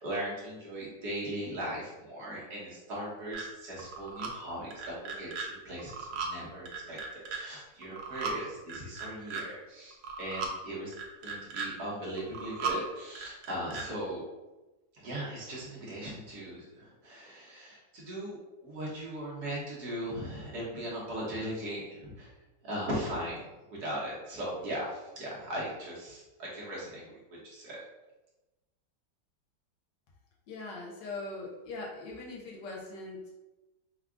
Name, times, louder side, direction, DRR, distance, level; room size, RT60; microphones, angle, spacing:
voice 1, 0.0-10.9 11.2-14.2 14.9-18.4 18.6-22.3 22.6-23.4 23.7-27.8, right 1 dB, 65° right, -5 dB, 1.8 m, -38 dB
sound 1, 3.3-3.4 3.8-4.3 4.7-5.5 5.8-6.3 6.7-7.4 7.8-8.4 8.7-9.4 9.9-10.5 10.9-11.7 12.2-12.8 13.2-13.8, right 5 dB, 80° right, 1.4 m, -36 dB
voice 2, 30.5-33.4, left 2 dB, 75° left, -2 dB, 1.6 m, -41 dB
4.8 x 2.3 x 3.7 m, 1.1 s
omnidirectional pair, 1.9 m